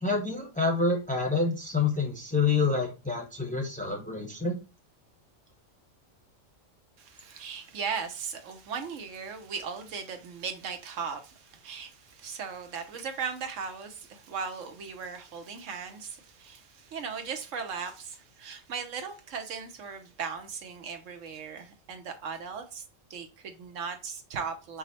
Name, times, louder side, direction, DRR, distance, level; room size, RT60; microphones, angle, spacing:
voice 1, 0.0-4.5, left 4 dB, 5° left, 0.8 m, -27 dB
voice 2, 7.0-22.8 23.1-24.8, right 6 dB, 75° right, 1.1 m, -37 dB
5.2 x 2.1 x 4.1 m
omnidirectional pair, 1.3 m